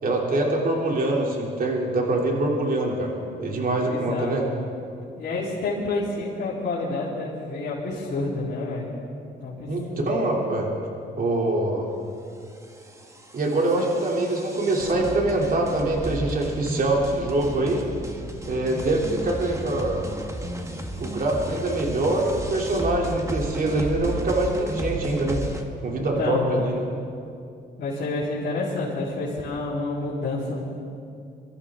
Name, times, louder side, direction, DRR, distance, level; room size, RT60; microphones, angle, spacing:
voice 1, 0.0-4.4 9.7-10.7 11.2-11.9 13.3-17.9 18.5-20.1 21.0-25.4 25.8-26.8, right 2 dB, 45° right, -1 dB, 3.1 m, -24 dB
voice 2, 3.8-4.5 5.2-8.9 9.4-10.1 13.7-13.9 14.8-15.0 26.0-26.8 27.8-30.6, left 2 dB, 60° left, -11 dB, 3.8 m, -29 dB
sound 1, 12.4-25.6, right 1 dB, 15° right, 1.5 m, -34 dB
24.0 x 13.5 x 3.7 m, 2.5 s
cardioid pair, 90°, 20 cm